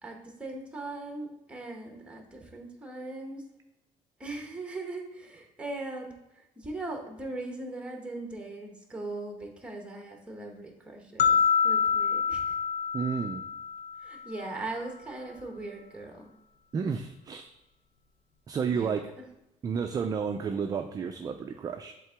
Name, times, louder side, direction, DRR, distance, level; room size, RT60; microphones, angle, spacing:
voice 1, 0.0-3.4 4.2-11.4 11.6-12.6 14.0-16.3 18.6-18.9, right 2 dB, 10° right, 2 dB, 1.0 m, -39 dB
sound 1, 11.2-14.3, left 6 dB, 60° left, 0.6 m, -26 dB
voice 2, 12.9-13.4 16.7-17.5 18.5-19.1 19.6-21.9, right 6 dB, 30° right, 5 dB, 0.3 m, -31 dB
7.6 x 3.7 x 3.4 m, 0.92 s
cardioid pair, 140°, 14 cm